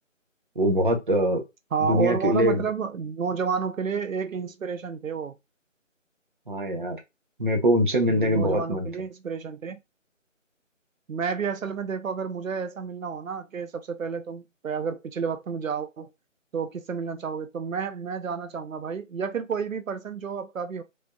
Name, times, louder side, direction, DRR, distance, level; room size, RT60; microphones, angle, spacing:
voice 1, 0.6-1.4 1.8-2.6 6.5-7.0 7.4-8.9, equal, 40° right, 0.7 m, -23 dB
voice 2, 1.7-5.3 8.1-9.8 11.1-16.1 16.5-20.8, right 6 dB, 85° right, 0.6 m, -30 dB
3.3 x 2.7 x 2.2 m
figure-of-eight pair, 165°, 39 cm